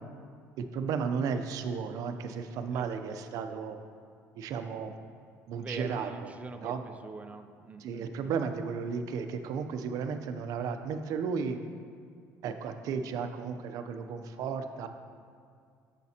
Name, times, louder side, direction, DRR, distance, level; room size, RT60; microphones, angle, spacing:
voice 1, 0.6-3.8 4.4-4.9 5.5-6.3 6.6-6.8 7.8-11.6 12.4-14.9, right 6 dB, 70° right, 8 dB, 0.6 m, -34 dB
voice 2, 5.5-8.3, right 3 dB, 20° right, 7 dB, 0.6 m, -44 dB
10.5 x 7.3 x 2.9 m, 2.3 s
cardioid pair, 115°, 6 cm